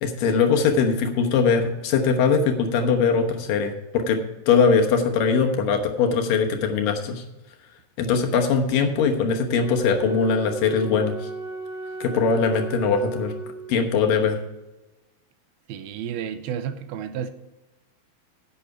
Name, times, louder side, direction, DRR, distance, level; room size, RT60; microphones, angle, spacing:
voice 1, 0.0-4.2 4.5-7.2 8.0-11.3 12.0-13.3 13.7-14.4, left 5 dB, 70° left, 4 dB, 2.6 m, -21 dB
Wind instrument woodwind instrument, 9.5-14.0, right 3 dB, 60° right, 3.0 m, -35 dB
voice 2, 15.7-17.3, right 8 dB, 90° right, 10 dB, 2.7 m, -31 dB
10.5 x 8.6 x 4.7 m, 1.0 s
omnidirectional pair, 4.3 m